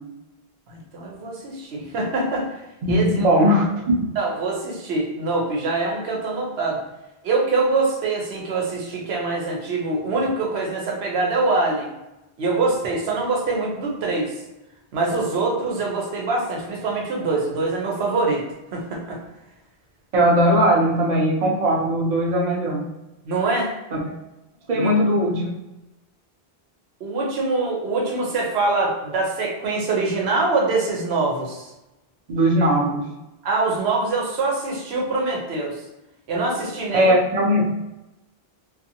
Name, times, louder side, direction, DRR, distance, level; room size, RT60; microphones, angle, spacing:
voice 1, 0.7-2.5 2.9-3.3 4.2-6.8 7.2-11.9 12.4-14.3 14.9-18.4 18.7-19.2 23.3-23.7 24.7-24.9 27.0-31.7 33.4-35.8 36.3-37.1, right 3 dB, 85° right, -2 dB, 1.0 m, -24 dB
voice 2, 2.8-4.1 20.1-22.9 23.9-24.1 24.7-25.5 32.3-33.1 36.9-37.6, equal, 50° right, -2 dB, 0.7 m, -19 dB
2.6 x 2.4 x 2.7 m, 0.96 s
omnidirectional pair, 1.0 m